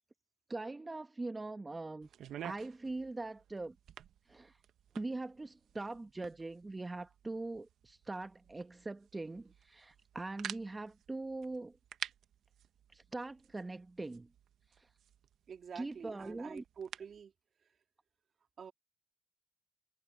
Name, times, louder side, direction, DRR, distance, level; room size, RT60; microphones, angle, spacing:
voice 1, 0.5-2.1 2.4-3.8 4.3-4.6 4.9-11.8 12.9-14.3 14.8-14.9 15.7-16.6, right 2 dB, 25° right, 0.9 m, -42 dB
sound 1, 2.0-17.2, right 10 dB, 90° right, 0.6 m, -51 dB
voice 2, 15.5-17.3 18.6-18.7, right 7 dB, 65° right, 2.5 m, -47 dB
cardioid pair, 75°, 0 cm